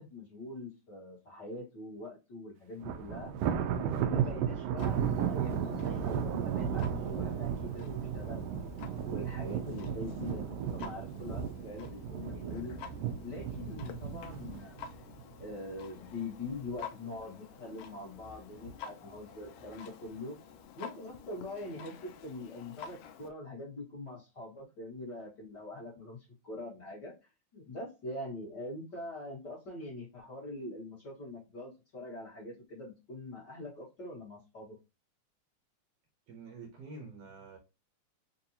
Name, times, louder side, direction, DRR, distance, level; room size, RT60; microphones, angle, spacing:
voice 1, 0.0-3.3 3.7-8.7 9.1-12.8 13.2-14.9 15.4-20.4 20.7-26.2 26.4-27.1 27.5-34.8, left 2 dB, 45° left, 1.6 m, -43 dB
Thunder, 2.8-16.1 16.5-16.8 17.2-17.3 18.2-18.7, right 8 dB, 80° right, 1.4 m, -34 dB
Clock, 4.8-23.3, left 7 dB, 90° left, 1.3 m, -51 dB
voice 2, 36.3-37.6, right 3 dB, 65° right, 1.8 m, -47 dB
4.7 x 2.6 x 2.7 m
omnidirectional pair, 3.4 m